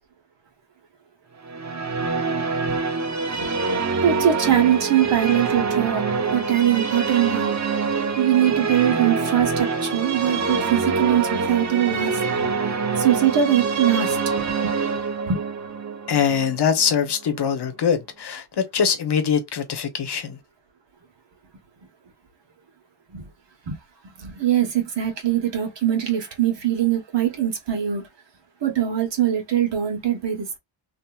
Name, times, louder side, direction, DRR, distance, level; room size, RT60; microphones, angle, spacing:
sound 1, 1.4-17.5, right 4 dB, 35° right, 0.8 m, -25 dB
voice 1, 4.0-6.0 6.3-7.5 8.2-12.1 13.0-14.2 15.3-15.4 23.1-23.3 23.7-23.8 24.2-28.0 28.6-30.6, right 10 dB, 60° right, 1.2 m, -22 dB
voice 2, 16.1-20.4, left 7 dB, 55° left, 0.9 m, -23 dB
2.9 x 2.7 x 2.3 m
cardioid pair, 85°, 50 cm